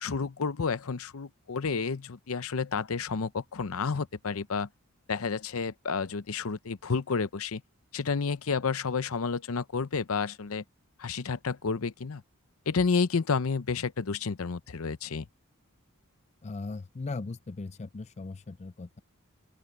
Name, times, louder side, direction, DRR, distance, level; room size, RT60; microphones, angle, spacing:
voice 1, 0.0-4.7 5.1-7.6 7.9-10.6 11.0-12.2 12.7-15.3, left 5 dB, 70° left, 0.7 m, -30 dB
voice 2, 16.4-19.0, left 3 dB, 30° left, 0.5 m, -38 dB
open air
head